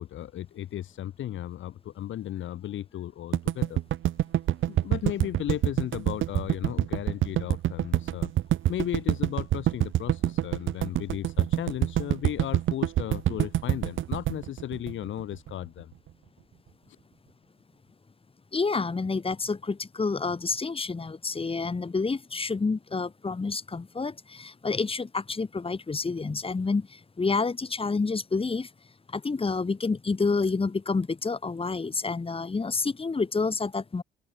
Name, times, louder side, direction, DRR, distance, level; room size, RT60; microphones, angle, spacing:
voice 1, 0.0-3.8 4.7-8.3 8.7-15.9, left 12 dB, 75° left, 4.9 m, -35 dB
sound 1, 3.3-15.5, right 12 dB, 80° right, 7.3 m, -26 dB
voice 2, 18.5-28.7 29.1-34.0, left 4 dB, 30° left, 7.1 m, -29 dB
open air
cardioid pair, 90°, 20 cm